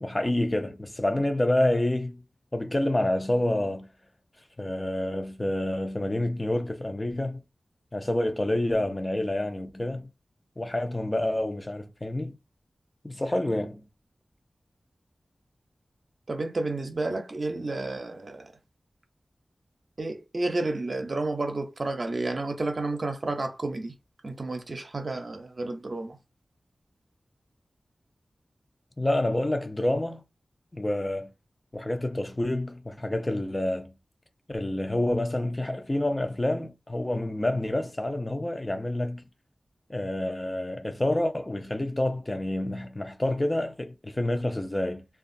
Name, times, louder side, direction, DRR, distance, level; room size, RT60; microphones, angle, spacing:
voice 1, 0.0-2.2 2.5-3.9 4.6-7.4 7.9-10.1 10.6-12.4 13.0-13.8 29.0-30.2 30.7-31.3 31.7-33.9 34.5-39.2 39.9-45.0, left 1 dB, 30° left, 0.5 m, -28 dB
voice 2, 16.3-18.5 20.0-23.9 24.2-26.2, right 2 dB, 60° right, 0.6 m, -31 dB
2.8 x 2.3 x 2.6 m
cardioid pair, 45°, 0 cm